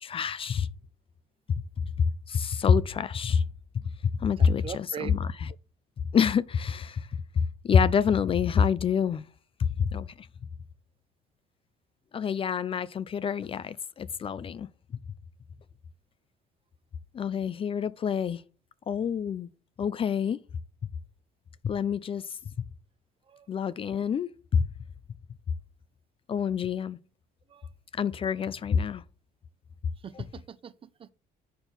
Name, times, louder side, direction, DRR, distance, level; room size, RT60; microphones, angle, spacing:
voice 1, 0.0-0.7 1.5-1.6 2.3-3.4 4.0-5.3 6.1-7.1 7.6-9.2 9.8-10.3 12.1-14.7 17.1-18.4 18.9-19.5 19.8-20.4 21.6-22.2 22.6-22.7 23.5-24.7 26.3-27.0 28.0-29.0, left 7 dB, 35° left, 0.4 m, -27 dB
voice 2, 4.4-5.1 23.3-23.5 27.5-27.7 30.0-31.1, right 8 dB, 35° right, 0.4 m, -41 dB
5.2 x 4.5 x 6.0 m
cardioid pair, 110°, 17 cm